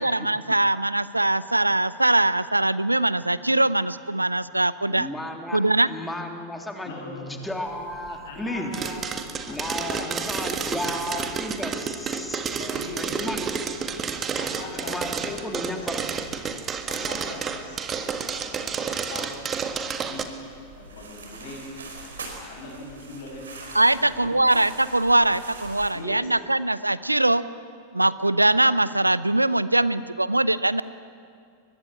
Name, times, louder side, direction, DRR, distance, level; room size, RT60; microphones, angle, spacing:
voice 1, 0.0-5.1 5.5-5.9 23.7-27.4 27.9-30.8, right 2 dB, 85° right, 17 dB, 0.7 m, -22 dB
voice 2, 4.9-5.6 5.9-8.7 9.5-12.6 13.0-13.4 14.8-16.0, left 1 dB, 5° left, 3 dB, 3.0 m, -34 dB
voice 3, 6.8-7.3 8.1-9.0 9.4-11.3 12.6-13.1 14.4-15.9 16.8-20.3 20.8-21.6 22.4-23.5 23.9-24.5 25.9-26.2, left 3 dB, 55° left, -6 dB, 7.7 m, -40 dB
sound 1, 7.4-25.9, right 3 dB, 70° right, 4.9 m, -47 dB
sound 2, 8.7-20.2, right 6 dB, 25° right, 1.7 m, -30 dB
23.5 x 22.0 x 8.5 m, 2.3 s
figure-of-eight pair, 90°, 0 cm